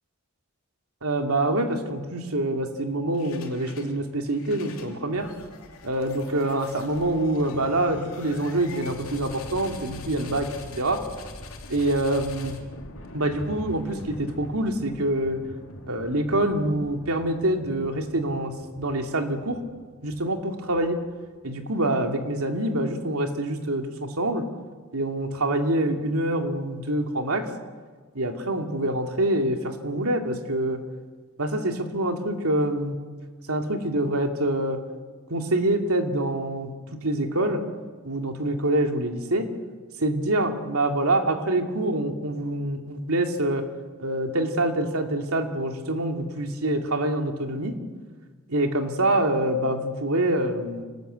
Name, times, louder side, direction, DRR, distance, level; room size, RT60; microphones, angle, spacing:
voice 1, 1.0-5.3 5.8-10.5 10.8-11.0 11.7-12.6 13.1-15.4 15.9-19.6 20.0-21.0 21.4-24.4 24.9-27.5 28.1-30.8 31.4-33.0 33.5-34.8 35.3-36.7 37.0-37.6 38.0-39.5 40.0-43.6 44.0-47.7 48.5-50.8, right 1 dB, 80° right, 4 dB, 2.5 m, -25 dB
sound 1, 3.1-3.9 4.3-21.2, left 2 dB, 70° left, 3.1 m, -43 dB
25.5 x 19.0 x 8.1 m, 1.5 s
head